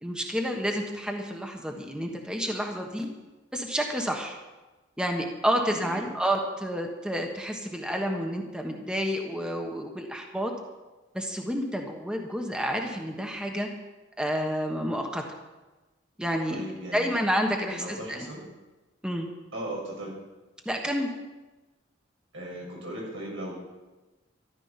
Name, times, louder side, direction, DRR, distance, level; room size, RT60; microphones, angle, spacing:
voice 1, 0.0-3.1 3.5-4.4 5.0-10.5 11.1-13.7 14.2-15.2 16.2-16.6 16.9-18.2 19.0-19.3 20.6-21.1, equal, 5° right, 2 dB, 1.3 m, -29 dB
voice 2, 5.7-6.1 16.5-17.1 17.7-18.4 19.5-20.1 22.3-23.5, right 1 dB, 90° right, -3 dB, 6.1 m, -37 dB
14.0 x 11.0 x 5.8 m, 1.2 s
head